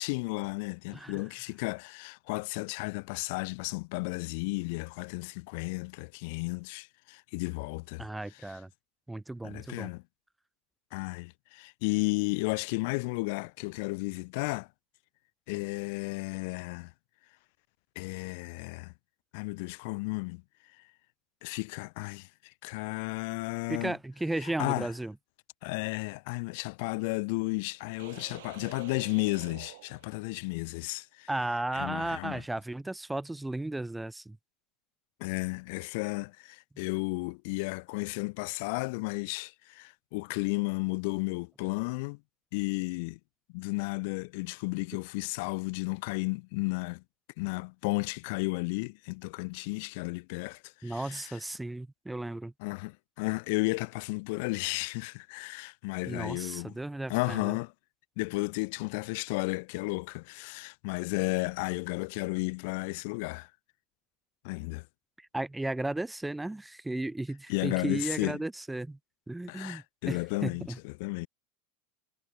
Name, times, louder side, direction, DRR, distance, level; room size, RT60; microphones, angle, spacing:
voice 1, 0.0-8.0 9.4-10.0 10.9-14.7 15.5-16.9 18.0-18.9 19.3-20.4 21.4-24.0 24.4-24.9 25.6-31.3 31.8-32.4 35.2-42.2 42.5-43.2 43.5-47.0 47.4-51.4 52.6-56.8 57.1-57.7 58.2-63.5 64.4-64.9 67.5-68.4 69.5-71.3, left 28 dB, 60° left, 0.4 m, -33 dB
voice 2, 0.9-1.2 8.0-8.7 9.1-9.9 23.7-25.1 31.3-34.4 50.8-52.5 56.1-57.6 65.2-69.0 69.3-70.8, right 2 dB, 5° right, 0.6 m, -35 dB
sound 1, 28.0-30.6, right 17 dB, 80° right, 2.6 m, -49 dB
supercardioid pair, 145°, 0 cm